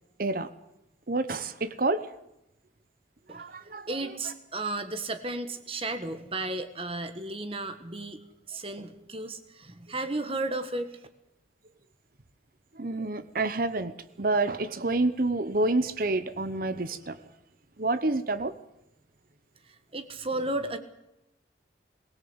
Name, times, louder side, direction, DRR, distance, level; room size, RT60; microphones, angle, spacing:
voice 1, 1.1-2.1 3.3-4.1 12.7-13.9 14.2-17.2 17.8-18.5, right 2 dB, 50° right, 12 dB, 1.0 m, -28 dB
voice 2, 3.9-8.2 8.5-10.9 19.9-20.8, right 2 dB, 30° right, 9 dB, 1.5 m, -33 dB
22.0 x 17.5 x 8.1 m, 0.88 s
head